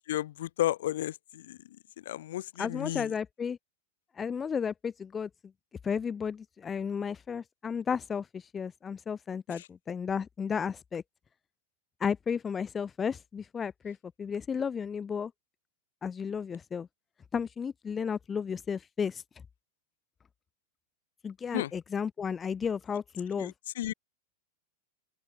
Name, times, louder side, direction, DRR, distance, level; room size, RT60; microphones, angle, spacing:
voice 1, 0.0-3.1 9.5-9.7 21.5-21.7 23.3-23.9, left 13 dB, 65° left, 2.7 m, -34 dB
voice 2, 2.6-3.6 4.2-5.3 5.8-11.0 12.0-15.3 16.0-16.9 17.3-19.2 21.2-23.5, left 6 dB, 20° left, 1.3 m, -33 dB
open air
hypercardioid pair, 95°, 0 cm